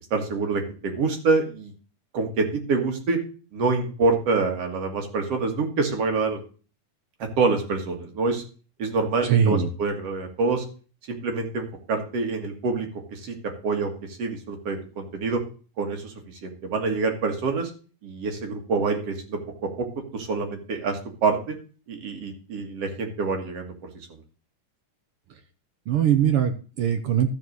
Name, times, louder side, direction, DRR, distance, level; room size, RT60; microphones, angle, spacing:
voice 1, 0.1-1.7 2.1-3.2 3.5-6.4 7.4-8.4 8.8-10.6 11.1-13.4 13.6-13.9 14.2-15.4 15.8-16.1 16.4-17.7 18.0-19.4 19.8-19.9 20.1-21.5 21.9-23.7, right 4 dB, 55° right, 3 dB, 2.6 m, -26 dB
voice 2, 9.2-9.7 25.9-27.3, right 9 dB, 75° right, 7 dB, 1.3 m, -21 dB
13.0 x 5.4 x 6.2 m, 0.37 s
omnidirectional pair, 3.7 m